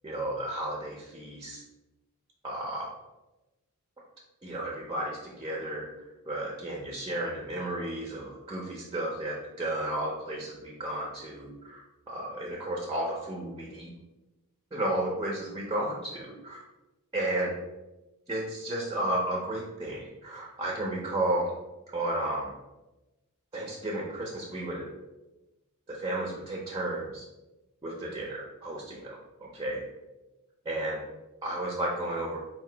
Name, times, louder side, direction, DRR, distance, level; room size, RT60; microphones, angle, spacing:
voice 1, 0.0-1.6 2.4-2.9 4.4-5.9 6.3-13.9 14.7-16.6 17.1-17.5 18.3-21.5 21.9-22.5 23.5-24.9 25.9-27.2 27.8-29.8 30.7-31.0 31.4-32.4, right 1 dB, 20° right, -2 dB, 0.5 m, -33 dB
4.2 x 2.8 x 3.2 m, 1.0 s
head